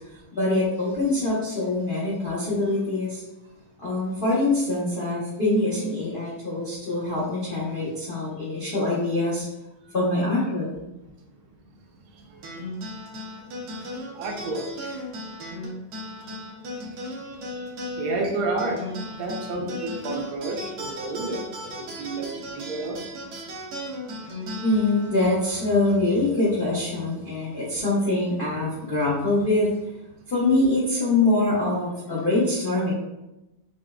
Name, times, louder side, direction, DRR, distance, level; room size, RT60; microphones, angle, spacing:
voice 1, 0.3-3.2 3.8-9.5 9.9-10.9 24.6-30.0 30.3-32.9, left 2 dB, 75° left, -8 dB, 0.5 m, -24 dB
sound 1, 12.4-27.2, equal, 65° right, 1.0 m, -37 dB
voice 2, 14.1-15.0 17.2-17.7 17.9-18.8 19.2-22.3 22.5-23.0, right 2 dB, 80° right, 1 dB, 1.5 m, -30 dB
6.0 x 2.1 x 2.3 m, 0.97 s
omnidirectional pair, 2.4 m